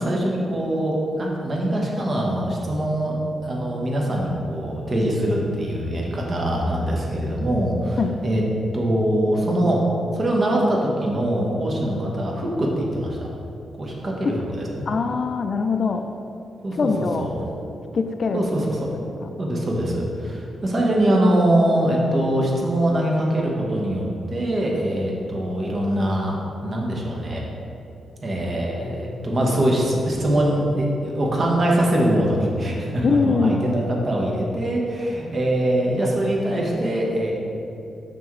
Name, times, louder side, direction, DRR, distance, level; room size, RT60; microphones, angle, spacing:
voice 1, 0.0-3.2 3.4-8.4 8.7-9.8 10.1-13.3 13.7-14.9 16.6-16.9 17.2-17.3 18.3-18.9 19.4-27.4 28.2-37.3, right 1 dB, 35° right, -2 dB, 1.1 m, -23 dB
voice 2, 14.9-16.0 16.7-17.3 17.9-18.5 19.2-19.3 33.0-33.7, left 4 dB, 45° left, 6 dB, 0.3 m, -22 dB
5.9 x 5.9 x 3.1 m, 2.9 s
cardioid pair, 125°, 0 cm